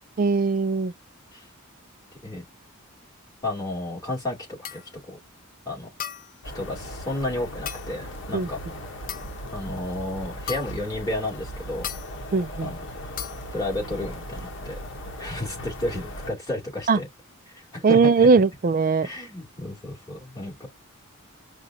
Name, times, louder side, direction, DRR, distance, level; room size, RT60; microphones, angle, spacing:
voice 1, 0.2-0.9 8.3-8.5 12.3-12.7 16.9-17.0 17.8-19.1, right 4 dB, 40° right, 0.4 m, -19 dB
voice 2, 3.4-4.8 5.1-5.2 5.6-5.9 6.5-8.6 9.5-11.9 12.6-12.8 13.5-14.8 15.2-17.1 17.5-18.3 19.0-20.7, left 1 dB, 15° left, 2.7 m, -32 dB
sound 1, 4.6-4.9 6.0-6.4 7.6-8.0 9.1-9.5 10.5-10.9 11.8-12.1 13.2-13.5, left 10 dB, 40° left, 0.4 m, -36 dB
sound 2, 6.4-16.3, equal, 60° left, 1.0 m, -38 dB
5.1 x 2.4 x 2.6 m
head